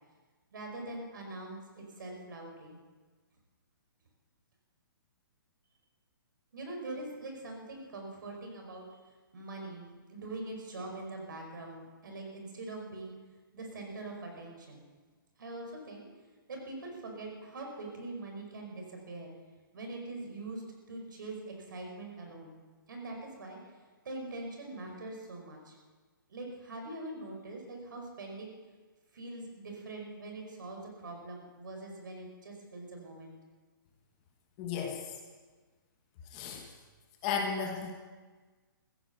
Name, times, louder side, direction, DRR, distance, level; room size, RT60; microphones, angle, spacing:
voice 1, 0.5-2.8 6.5-9.0 9.3-13.1 13.5-14.8 15.4-16.1 16.5-19.3 19.7-20.6 20.9-22.6 22.9-23.6 24.0-25.7 26.3-28.5 29.1-33.3, right 2 dB, 60° right, 1 dB, 5.1 m, -43 dB
voice 2, 34.6-35.1 36.3-36.6 37.2-37.9, left 6 dB, 20° left, 2 dB, 1.2 m, -34 dB
15.5 x 10.0 x 8.1 m, 1.4 s
hypercardioid pair, 175°, 12 cm